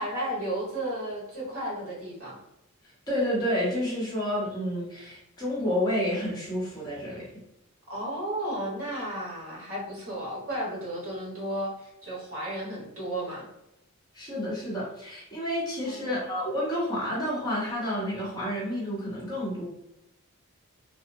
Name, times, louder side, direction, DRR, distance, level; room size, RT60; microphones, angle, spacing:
voice 1, 0.0-2.4 7.9-13.4 15.8-16.3, right 1 dB, 70° right, -5 dB, 1.2 m, -33 dB
voice 2, 3.1-7.3 14.1-19.6, equal, 20° left, -6 dB, 0.8 m, -30 dB
2.8 x 2.0 x 2.6 m, 0.86 s
head